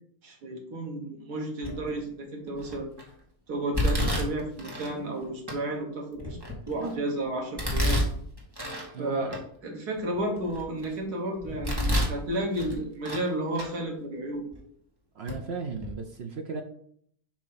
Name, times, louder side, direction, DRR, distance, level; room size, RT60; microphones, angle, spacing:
voice 1, 0.2-2.9 3.5-6.4 6.7-8.0 9.0-14.4, right 1 dB, 90° right, 0 dB, 2.0 m, -32 dB
Domestic sounds home sounds, 1.6-2.0 2.6-3.0 3.7-4.9 5.5-5.6 6.2-6.9 7.6-8.9 9.3-9.4 10.0-10.9 11.4-12.2 12.5-13.3 13.5-13.7 14.5-14.6 15.3-15.4 15.7-15.9, left 1 dB, 15° right, 1.4 m, -29 dB
voice 2, 8.9-9.3 15.2-16.6, right 5 dB, 60° right, 5 dB, 0.7 m, -36 dB
7.3 x 2.9 x 5.6 m, 0.63 s
omnidirectional pair, 1.6 m